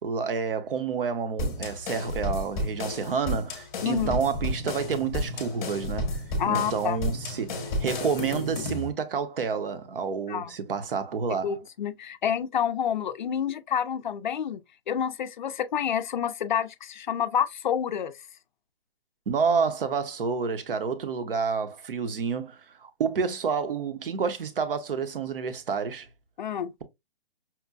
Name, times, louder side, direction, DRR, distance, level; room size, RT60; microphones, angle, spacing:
voice 1, 0.0-11.6 19.3-26.1, right 5 dB, 60° right, 0.9 m, -29 dB
sound 1, 1.4-8.9, left 1 dB, 15° left, 0.9 m, -32 dB
sound 2, 3.7-8.7, right 1 dB, 25° right, 0.4 m, -40 dB
voice 2, 3.8-4.2 6.4-7.0 10.3-10.5 11.4-14.6 14.9-18.1 26.4-26.7, left 8 dB, 50° left, 0.4 m, -28 dB
5.8 x 2.1 x 2.4 m
hypercardioid pair, 165°, 31 cm